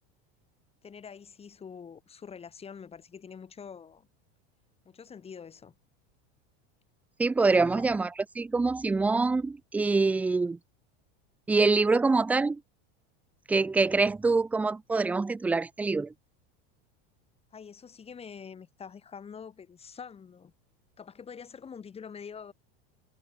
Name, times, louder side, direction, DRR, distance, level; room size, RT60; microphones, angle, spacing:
voice 1, 0.8-4.1 4.8-5.7 7.5-7.9 17.5-20.5 21.0-22.5, left 6 dB, 20° left, 6.2 m, -45 dB
voice 2, 7.2-10.6 11.5-12.6 13.5-16.1, right 3 dB, 5° right, 0.4 m, -25 dB
supercardioid pair, 155°, 32 cm